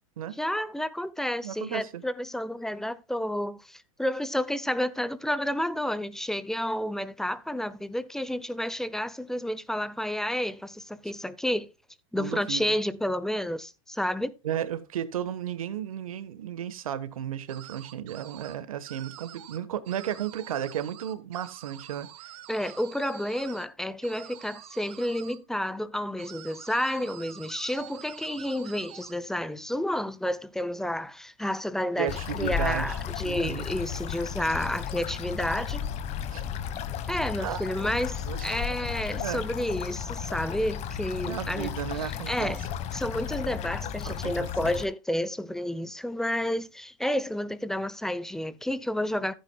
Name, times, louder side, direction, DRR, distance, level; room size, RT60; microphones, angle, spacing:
voice 1, 0.4-11.7 12.1-14.3 22.5-35.9 37.1-41.7 42.0-42.6 42.9-49.3, left 1 dB, ahead, 0.7 m, -30 dB
voice 2, 1.4-2.0 12.1-12.6 14.4-22.3 22.6-22.7 32.0-33.0 33.2-33.7 36.3-36.4 37.4-37.6 38.3-38.5 39.2-39.4 41.2-42.6 44.0-44.5, right 10 dB, 85° right, 1.4 m, -34 dB
sound 1, 17.5-18.6 18.8-19.6 19.9-23.7 24.0-25.4 26.2-29.1, right 14 dB, 55° right, 2.0 m, -47 dB
sound 2, 32.1-44.9, left 8 dB, 40° left, 1.4 m, -34 dB
14.5 x 9.1 x 2.3 m
hypercardioid pair, 120°, 18 cm